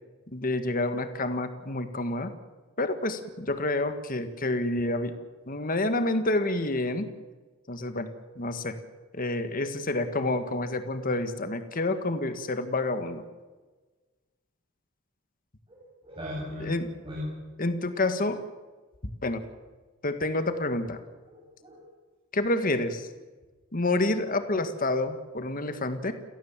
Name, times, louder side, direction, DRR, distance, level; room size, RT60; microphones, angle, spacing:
voice 1, 0.3-2.3 2.8-5.2 5.5-7.1 7.7-8.1 8.4-8.7 9.1-13.2 16.6-16.9 17.6-18.4 19.2-19.4 20.0-21.0 22.3-23.1 23.7-26.1, left 2 dB, 45° left, 9 dB, 1.6 m, -28 dB
voice 2, 15.7-16.7 17.0-17.3 21.3-21.8 25.6-25.8, left 1 dB, 25° right, -4 dB, 7.4 m, -38 dB
29.5 x 17.0 x 7.4 m, 1.3 s
head